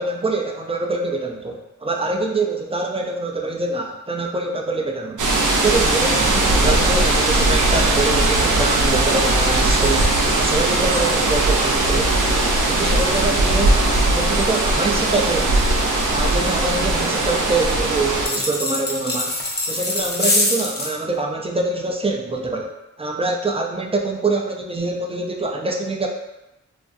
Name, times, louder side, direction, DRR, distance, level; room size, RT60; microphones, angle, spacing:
voice 1, 0.0-5.2 5.6-12.1 12.7-15.7 16.1-19.4 19.7-22.7 23.0-26.1, right 3 dB, 20° right, 1 dB, 0.4 m, -25 dB
sound 1, 5.2-18.3, right 2 dB, 80° right, 0.5 m, -19 dB
sound 2, 18.2-20.9, left 2 dB, 35° left, 0.5 m, -23 dB
2.5 x 2.2 x 2.5 m, 0.96 s
cardioid pair, 55°, 31 cm